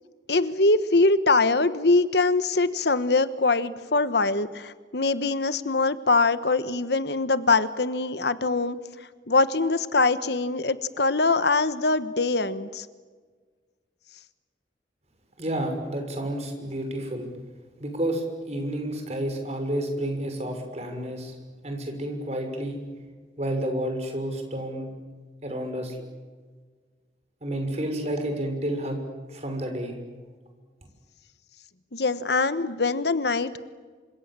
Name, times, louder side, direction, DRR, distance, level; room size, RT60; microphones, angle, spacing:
voice 1, 0.3-8.8 9.3-12.9 31.9-33.6, left 3 dB, 70° left, 13 dB, 1.3 m, -23 dB
voice 2, 15.4-17.3 17.8-21.3 21.6-22.8 23.4-24.9 25.4-26.0 27.4-29.0 29.3-30.0, right 1 dB, 35° right, 4 dB, 6.1 m, -30 dB
28.0 x 26.5 x 7.6 m, 1.5 s
head